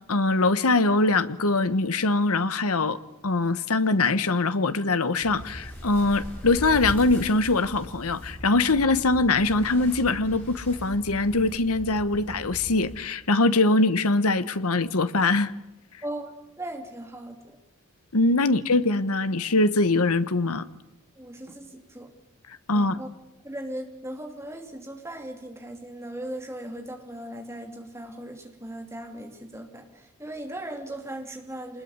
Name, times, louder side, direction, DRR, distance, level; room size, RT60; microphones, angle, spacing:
voice 1, 0.1-3.0 3.2-15.5 18.1-20.6 22.7-23.0, left 2 dB, 85° left, 1.2 m, -22 dB
sound 1, 5.2-13.0, equal, 10° left, 6.2 m, -39 dB
voice 2, 16.0-17.4 18.4-18.5 21.2-22.1 22.7-23.1 23.4-31.8, right 1 dB, 10° right, 2.8 m, -38 dB
25.5 x 20.5 x 9.7 m
head